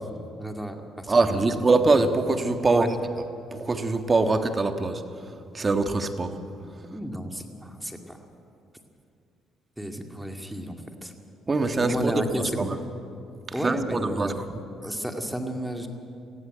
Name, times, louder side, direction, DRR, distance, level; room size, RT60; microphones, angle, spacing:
voice 1, 0.4-1.3 2.7-2.9 6.9-8.2 9.8-11.1 11.8-12.8 13.5-14.4 14.8-15.9, equal, 5° right, 4 dB, 2.1 m, -32 dB
voice 2, 1.1-2.9 3.5-5.0 5.5-6.3 11.5-12.1 12.6-12.7 13.6-14.3, right 3 dB, 30° right, 7 dB, 1.5 m, -23 dB
19.0 x 15.0 x 9.1 m, 2.5 s
cardioid pair, 85°, 0 cm